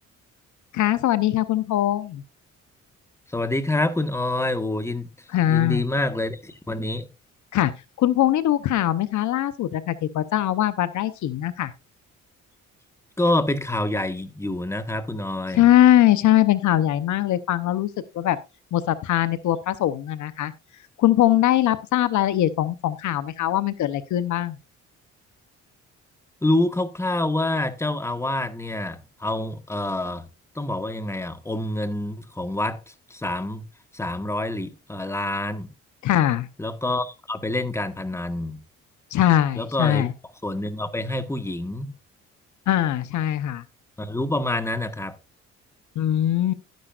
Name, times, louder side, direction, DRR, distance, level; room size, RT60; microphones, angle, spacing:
voice 1, 0.7-2.2 5.3-5.8 7.5-7.7 8.0-11.7 15.5-17.9 18.1-18.4 18.7-20.5 21.0-24.6 36.0-36.5 39.1-40.1 42.7-43.6 46.0-46.5, left 13 dB, 75° left, 0.9 m, -21 dB
voice 2, 3.3-7.1 13.2-15.6 26.4-30.3 30.5-33.6 33.9-35.7 36.6-38.6 39.5-40.1 40.4-41.9 44.0-45.2, left 1 dB, 10° left, 1.4 m, -27 dB
12.0 x 10.5 x 2.5 m
cardioid pair, 90°, 30 cm